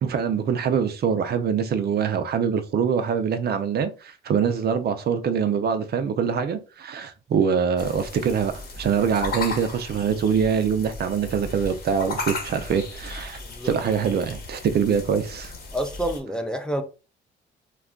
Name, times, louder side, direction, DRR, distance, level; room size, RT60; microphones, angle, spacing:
voice 1, 0.0-15.5, right 7 dB, 55° right, 0.5 m, -24 dB
sound 1, 7.8-16.2, left 3 dB, 50° left, 1.0 m, -36 dB
voice 2, 13.4-13.8 15.7-16.8, right 1 dB, 5° left, 0.5 m, -28 dB
2.3 x 2.2 x 3.6 m
cardioid pair, 90°, 20 cm